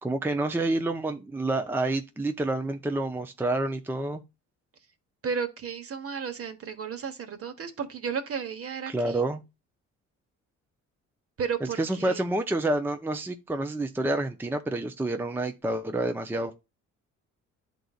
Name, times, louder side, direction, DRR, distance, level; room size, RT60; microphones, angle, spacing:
voice 1, 0.0-4.2 8.9-9.4 11.8-16.5, right 2 dB, 5° right, 0.6 m, -28 dB
voice 2, 5.2-9.2 11.4-12.2, right 6 dB, 50° right, 1.2 m, -33 dB
11.5 x 4.0 x 2.4 m
cardioid pair, 90°, 30 cm